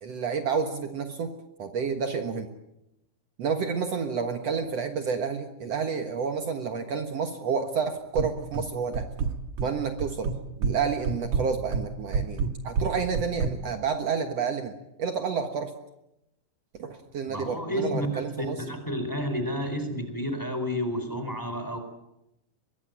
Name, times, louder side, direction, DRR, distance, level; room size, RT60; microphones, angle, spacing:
voice 1, 0.0-1.3 1.6-2.5 3.4-9.0 9.6-10.3 10.6-15.7 16.8-18.6, right 6 dB, 90° right, 6 dB, 1.4 m, -30 dB
sound 1, 8.2-8.7 8.9-9.7 10.0-10.8 11.0-13.5, right 5 dB, 55° right, 2.2 m, -27 dB
voice 2, 17.3-21.8, equal, 5° left, 7 dB, 3.2 m, -31 dB
24.0 x 21.0 x 9.3 m, 0.87 s
omnidirectional pair, 5.3 m